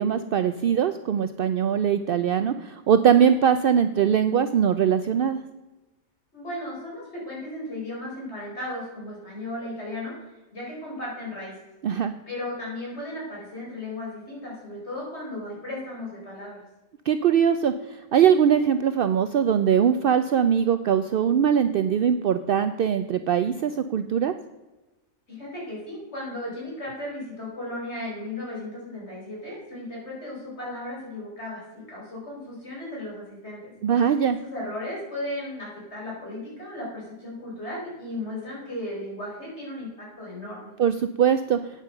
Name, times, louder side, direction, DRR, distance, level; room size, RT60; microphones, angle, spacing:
voice 1, 0.0-5.4 11.8-12.1 17.1-17.7 18.1-24.3 33.8-34.4 40.8-41.6, right 8 dB, 75° right, 10 dB, 0.5 m, -21 dB
voice 2, 6.3-10.1 10.5-11.6 12.3-16.6 25.3-33.7 34.4-40.7, left 1 dB, 50° left, -4 dB, 4.9 m, -35 dB
9.2 x 8.2 x 6.6 m, 1.1 s
omnidirectional pair, 1.5 m